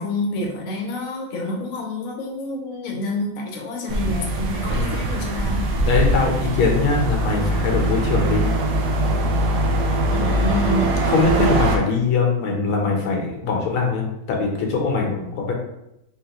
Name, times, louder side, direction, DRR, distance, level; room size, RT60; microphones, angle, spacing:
voice 1, 0.0-5.6 10.1-10.9, left 1 dB, 55° left, 0 dB, 1.0 m, -27 dB
sound 1, 3.9-11.8, right 1 dB, 70° right, 1.0 m, -22 dB
voice 2, 4.7-5.1 5.8-8.4 11.0-15.5, left 4 dB, 85° left, 0 dB, 1.8 m, -22 dB
4.8 x 3.2 x 2.9 m, 0.84 s
omnidirectional pair, 2.3 m